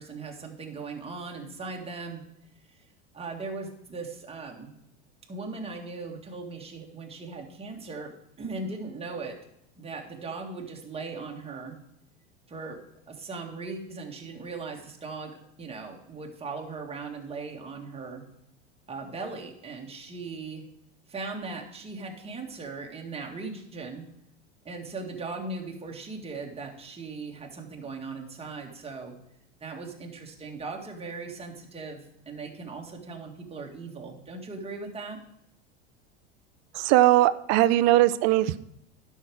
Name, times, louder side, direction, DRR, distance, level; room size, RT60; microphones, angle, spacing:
voice 1, 0.0-2.2 3.1-4.7 5.3-8.1 8.4-9.4 9.8-11.8 12.5-12.8 13.1-15.3 15.6-18.2 18.9-20.6 21.1-24.1 24.6-29.1 29.6-32.0 32.3-35.2, right 3 dB, 15° right, 1 dB, 1.9 m, -38 dB
voice 2, 36.7-38.6, right 16 dB, 45° right, 15 dB, 0.6 m, -20 dB
11.0 x 5.9 x 4.8 m, 0.76 s
hypercardioid pair, 90°, 36 cm